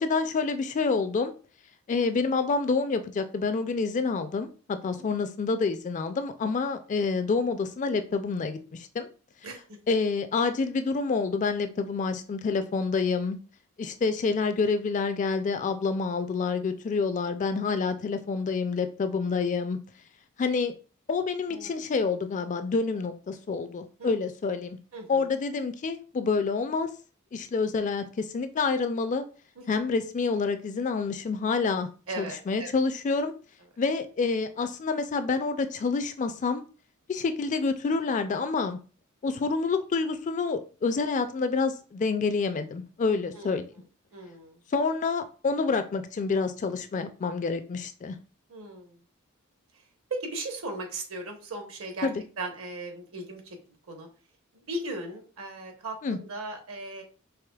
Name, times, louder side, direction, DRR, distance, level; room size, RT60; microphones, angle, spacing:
voice 1, 0.0-1.3 1.9-9.1 9.9-13.4 13.8-19.8 20.4-20.7 21.1-24.8 25.1-26.9 27.3-29.2 29.7-31.9 32.2-33.3 33.8-36.6 37.1-38.8 39.2-43.7 44.7-48.2 52.0-52.1 56.0-56.2, left 4 dB, 35° left, 9 dB, 0.3 m, -28 dB
voice 2, 21.5-21.8 24.0-24.1 24.9-25.3 29.7-29.8 32.1-32.7 43.3-43.6 44.1-44.6 48.5-49.0 50.1-52.1 52.4-54.1 54.5-57.0, right 2 dB, 65° right, 4 dB, 1.0 m, -37 dB
4.8 x 3.2 x 2.3 m, 0.37 s
head